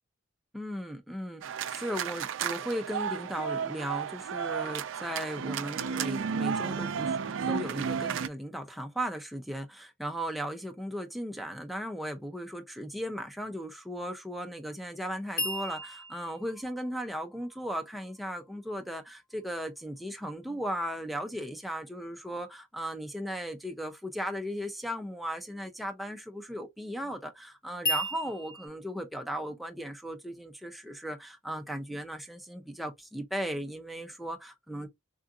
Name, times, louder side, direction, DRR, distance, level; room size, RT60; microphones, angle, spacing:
voice 1, 0.5-34.9, equal, ahead, 0.4 m, -37 dB
sound 1, 1.4-8.3, right 6 dB, 65° right, 0.4 m, -33 dB
sound 2, 15.4-18.5 27.8-28.7, equal, 50° left, 1.4 m, -35 dB
3.6 x 2.4 x 2.4 m
head